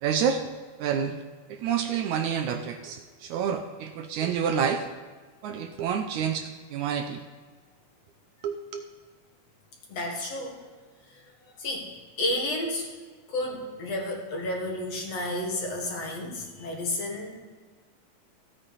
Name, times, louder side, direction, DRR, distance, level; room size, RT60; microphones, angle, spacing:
voice 1, 0.0-0.4 0.8-1.2 1.5-4.8 5.4-7.2 8.4-8.8, right 7 dB, 75° right, 6 dB, 1.9 m, -28 dB
voice 2, 9.9-10.6 11.6-12.9 13.3-17.3, left 1 dB, 55° left, 0 dB, 2.7 m, -31 dB
15.0 x 8.9 x 4.1 m, 1.4 s
omnidirectional pair, 3.8 m